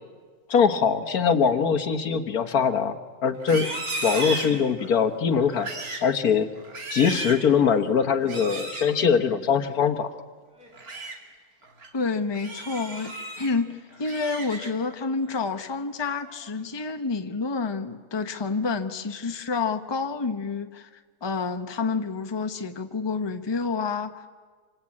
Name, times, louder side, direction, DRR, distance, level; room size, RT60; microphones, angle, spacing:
voice 1, 0.5-2.9 3.2-3.7 4.0-5.7 6.0-6.5 6.9-10.1, left 6 dB, 75° left, 9 dB, 1.8 m, -22 dB
Livestock farm animals working animals, 3.4-5.0 5.5-6.1 6.6-7.5 8.2-8.9 10.6-11.2 11.6-11.9 12.3-13.5 13.9-14.9 15.3-15.7 16.1-16.5, right 2 dB, 70° right, 3.2 m, -35 dB
voice 2, 11.9-24.3, left 4 dB, 20° left, 7 dB, 0.9 m, -29 dB
26.5 x 26.0 x 8.6 m, 1.5 s
omnidirectional pair, 1.6 m